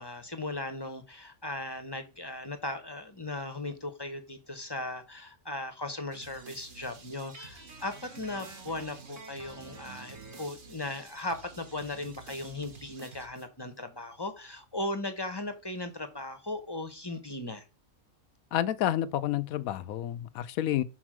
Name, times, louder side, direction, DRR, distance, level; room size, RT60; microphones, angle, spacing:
voice 1, 0.0-17.7, left 2 dB, 20° left, 0.7 m, -37 dB
sound 1, 6.1-13.8, right 4 dB, 40° right, 1.1 m, -51 dB
Guitar, 7.3-10.6, right 3 dB, 60° right, 2.2 m, -49 dB
voice 2, 18.5-20.8, left 12 dB, 80° left, 1.0 m, -29 dB
6.2 x 4.2 x 6.1 m
omnidirectional pair, 1.5 m